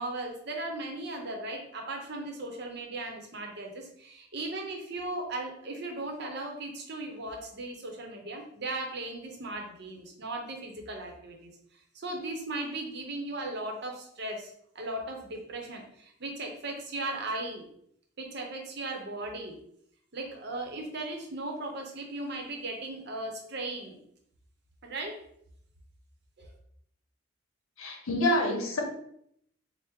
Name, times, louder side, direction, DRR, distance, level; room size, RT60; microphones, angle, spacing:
voice 1, 0.0-11.5 12.0-17.6 18.2-19.5 20.1-24.0 24.8-25.2 26.4-26.5, right 2 dB, 50° right, 1 dB, 0.7 m, -37 dB
voice 2, 27.8-28.8, left 1 dB, 80° left, 1 dB, 0.9 m, -27 dB
4.4 x 2.1 x 3.5 m, 0.70 s
head